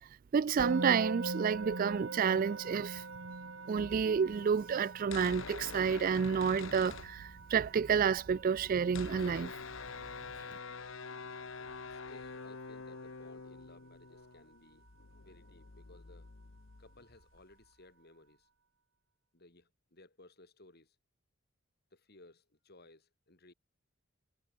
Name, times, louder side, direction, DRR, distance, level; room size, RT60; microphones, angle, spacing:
voice 1, 0.3-3.0 3.7-9.5, right 6 dB, 40° right, 0.3 m, -30 dB
Musical instrument, 0.6-11.7, right 3 dB, 60° right, 1.4 m, -43 dB
sound 1, 5.0-7.7 8.0-17.7, left 5 dB, 65° left, 1.0 m, -46 dB
voice 2, 11.6-14.9 15.2-16.3 16.8-18.5 19.3-21.0 21.9-23.5, left 2 dB, 50° left, 3.4 m, -60 dB
head